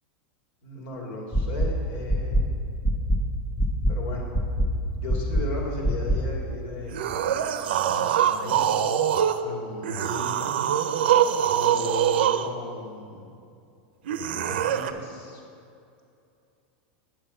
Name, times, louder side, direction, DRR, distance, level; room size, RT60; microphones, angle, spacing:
voice 1, 0.6-2.5 3.9-4.3 4.9-7.4 7.8-8.7 9.4-10.6 11.5-13.4 14.2-15.4, left 2 dB, 75° left, -1 dB, 2.5 m, -36 dB
sound 1, 1.3-1.7 2.1-2.4 2.8-3.2 3.6-3.9 4.3-4.7 5.1-5.4 5.8-6.2, right 1 dB, 15° left, 0.8 m, -22 dB
sound 2, 6.9-9.4 9.8-12.5 14.1-14.9, right 10 dB, 85° right, 0.6 m, -24 dB
9.2 x 7.8 x 5.5 m, 2.5 s
supercardioid pair, 135°, 5 cm